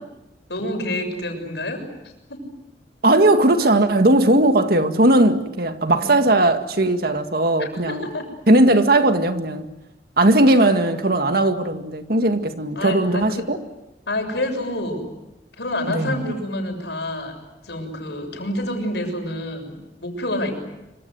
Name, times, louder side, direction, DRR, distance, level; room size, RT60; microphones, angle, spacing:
voice 1, 0.5-1.9 2.3-2.5 3.6-3.7 5.9-6.1 7.6-8.3 10.6-10.8 12.8-13.5 14.1-15.1 15.6-17.4 17.6-19.7 20.0-20.5, left 1 dB, 75° left, 7.0 m, -28 dB
voice 2, 3.0-8.1 8.5-9.7 10.2-13.6 15.9-16.3, right 1 dB, 60° right, 1.9 m, -18 dB
26.5 x 25.5 x 8.0 m
head